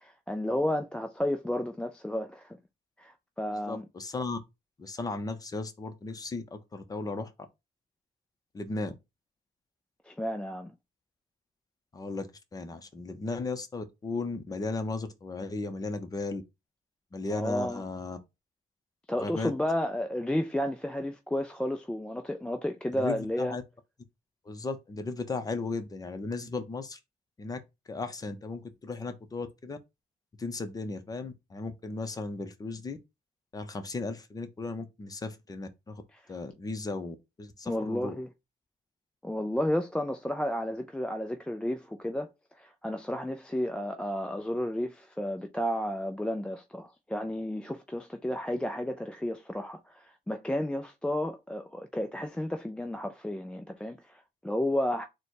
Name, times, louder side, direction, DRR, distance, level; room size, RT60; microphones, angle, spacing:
voice 1, 0.0-2.6 3.0-3.8 10.0-10.7 17.3-17.8 19.1-23.6 36.1-36.3 37.7-38.3 39.2-42.3 42.6-55.0, left 1 dB, 5° left, 0.4 m, -32 dB
voice 2, 3.5-4.4 4.8-7.3 8.5-9.0 11.9-16.4 17.1-18.2 19.2-19.5 22.9-23.6 24.5-27.0 27.4-27.6 27.9-29.8 30.4-33.0 33.5-36.0 36.3-38.2, left 3 dB, 20° left, 0.7 m, -36 dB
4.0 x 2.2 x 4.6 m
cardioid pair, 110°, 17 cm